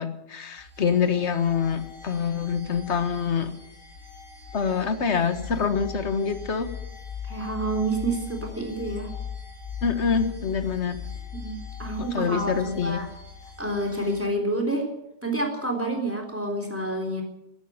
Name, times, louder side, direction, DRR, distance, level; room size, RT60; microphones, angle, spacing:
voice 1, 0.0-3.5 4.5-6.7 9.8-11.0 12.1-13.0, left 6 dB, 50° left, 10 dB, 1.6 m, -25 dB
sound 1, 0.6-14.3, left 7 dB, 65° left, 6.8 m, -40 dB
voice 2, 7.3-9.1 11.4-13.1 13.6-14.9 15.2-17.2, right 2 dB, 10° right, 3 dB, 3.5 m, -28 dB
13.5 x 11.5 x 9.3 m, 0.85 s
omnidirectional pair, 1.6 m